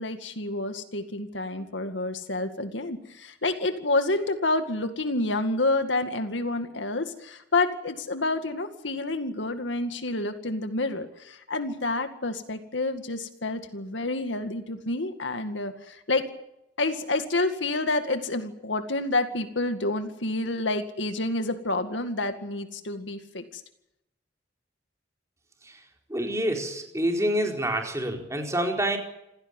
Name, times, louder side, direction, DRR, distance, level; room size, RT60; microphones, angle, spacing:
voice 1, 0.0-16.2 16.8-23.6, left 2 dB, 85° left, 7 dB, 2.1 m, -29 dB
voice 2, 26.1-29.0, right 1 dB, 15° right, 2 dB, 4.4 m, -27 dB
27.0 x 16.5 x 9.1 m, 0.86 s
head